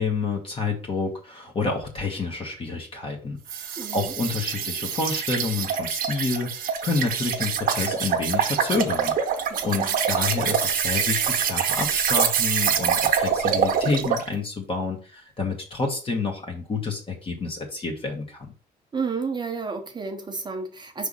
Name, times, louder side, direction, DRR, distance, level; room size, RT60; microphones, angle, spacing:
voice 1, 0.0-18.5, left 4 dB, 30° left, 1.3 m, -29 dB
sound 1, 3.5-14.3, right 7 dB, 60° right, 1.0 m, -25 dB
voice 2, 3.8-4.1 9.5-9.9 18.9-21.1, right 4 dB, 25° right, 0.8 m, -31 dB
5.0 x 3.4 x 5.5 m
cardioid pair, 110°, 17 cm